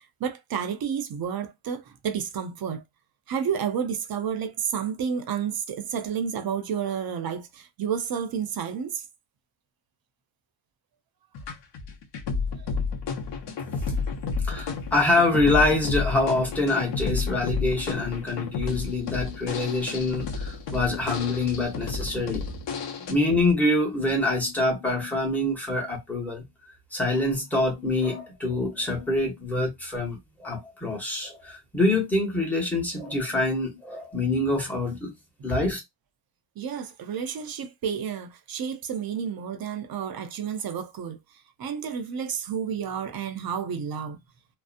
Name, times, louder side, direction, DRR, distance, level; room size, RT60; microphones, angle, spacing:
voice 1, 0.2-2.8 3.3-9.0 13.7-13.9 36.6-41.2 41.6-44.2, right 7 dB, 45° right, 0.6 m, -30 dB
sound 1, 11.3-23.1, left 4 dB, 60° left, 0.7 m, -31 dB
voice 2, 14.5-22.4 23.1-26.4 26.9-35.1 35.4-35.8, left 2 dB, 5° left, 0.9 m, -25 dB
2.6 x 2.0 x 2.4 m
cardioid pair, 135°, 50 cm